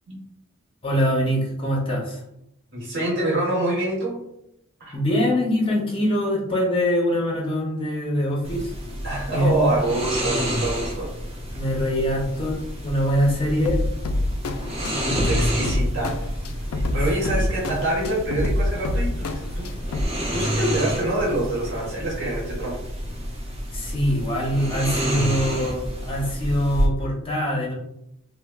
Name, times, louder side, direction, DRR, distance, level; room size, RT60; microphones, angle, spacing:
voice 1, 0.8-2.2 4.9-8.7 9.3-9.7 11.5-13.8 17.2-17.4 23.7-27.7, equal, 25° left, -3 dB, 0.6 m, -23 dB
voice 2, 2.7-4.2 4.8-5.0 9.0-11.1 15.2-16.2 16.7-19.2 19.6-19.7 20.3-22.8, right 1 dB, 60° right, -4 dB, 1.1 m, -26 dB
sound 1, 8.4-26.9, equal, 30° right, 0.6 m, -29 dB
sound 2, 13.7-20.1, left 1 dB, 90° left, 0.3 m, -27 dB
3.3 x 2.2 x 2.2 m, 0.79 s
head